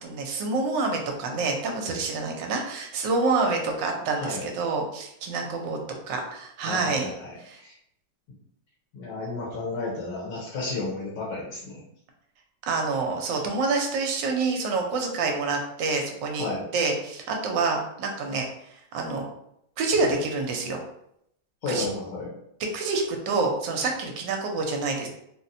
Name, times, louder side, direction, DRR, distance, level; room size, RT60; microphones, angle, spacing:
voice 1, 0.0-5.8 6.1-7.1 7.4-7.6 12.6-16.5 16.7-18.5 18.9-19.3 19.8-20.8 21.7-21.9 22.7-25.1, right 3 dB, 75° right, 2 dB, 1.2 m, -27 dB
voice 2, 6.7-7.7 8.9-11.8 16.4-16.7 21.6-22.3, left 3 dB, 75° left, -5 dB, 1.5 m, -32 dB
4.0 x 2.0 x 2.6 m, 0.75 s
omnidirectional pair, 2.0 m